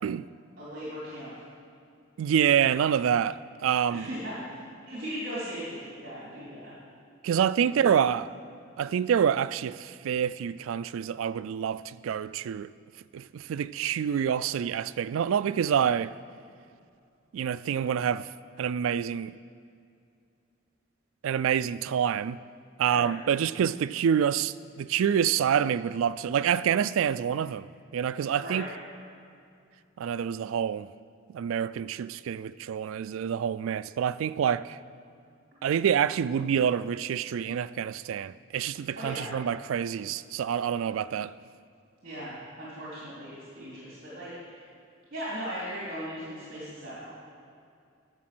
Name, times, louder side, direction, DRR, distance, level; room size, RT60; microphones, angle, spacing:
voice 1, 0.6-1.3 3.9-6.7 7.6-8.1 22.8-23.1 28.4-28.7 38.9-39.3 42.0-44.7 45.1-47.1, equal, 50° right, 3.0 m, -38 dB
voice 2, 2.2-4.1 7.2-8.3 8.8-12.7 13.1-16.1 17.3-18.3 18.6-19.4 21.2-22.4 22.8-27.7 27.9-28.7 30.0-30.9 31.3-34.8 35.6-41.3, right 8 dB, 85° right, 0.3 m, -27 dB
11.5 x 7.5 x 6.1 m
head